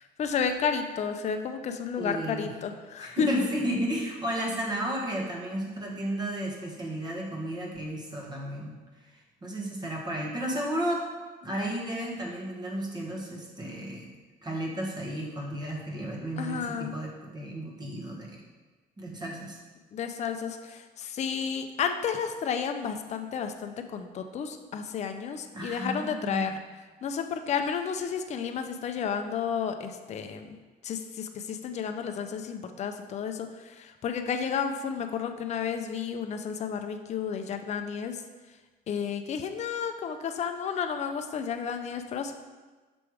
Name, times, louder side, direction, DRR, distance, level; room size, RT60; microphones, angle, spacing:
voice 1, 0.2-3.5 16.4-16.9 19.9-26.5 27.0-30.6 30.8-33.5 33.8-38.2 38.9-42.3, left 6 dB, 40° left, 6 dB, 0.5 m, -32 dB
voice 2, 2.0-2.5 3.0-8.8 9.0-11.1 11.4-14.1 14.4-18.4 19.0-19.6 25.5-26.6, right 1 dB, 25° right, -1 dB, 1.2 m, -33 dB
6.0 x 3.3 x 4.7 m, 1.3 s
cardioid pair, 110°, 17 cm